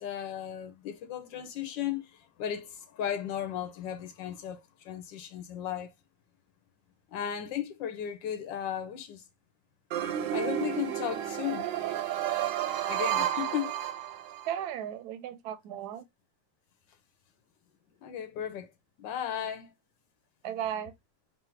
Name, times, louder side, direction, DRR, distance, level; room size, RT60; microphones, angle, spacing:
voice 1, 0.0-5.9 7.1-9.2 10.3-11.7 12.9-13.7 18.0-18.7 19.0-19.7, left 10 dB, 85° left, 1.5 m, -35 dB
sound 1, 9.9-14.5, right 11 dB, 90° right, 1.4 m, -31 dB
voice 2, 14.5-16.0 20.4-20.9, right 10 dB, 75° right, 1.0 m, -35 dB
4.0 x 2.1 x 4.4 m
omnidirectional pair, 2.0 m